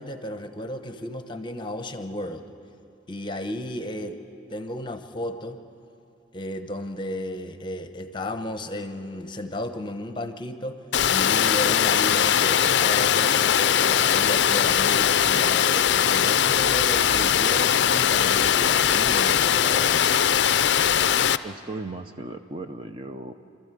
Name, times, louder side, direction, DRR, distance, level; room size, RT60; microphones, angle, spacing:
voice 1, 0.0-2.5 3.1-4.2 4.5-5.6 6.3-20.3, left 1 dB, 25° left, 8 dB, 0.9 m, -34 dB
Water, 10.9-21.4, left 9 dB, 60° left, 0.4 m, -20 dB
sound 1, 16.5-18.6, left 1 dB, 85° right, 6.3 m, -46 dB
voice 2, 21.4-23.3, right 2 dB, 25° right, 7 dB, 0.6 m, -36 dB
27.0 x 13.5 x 8.4 m, 2.6 s
head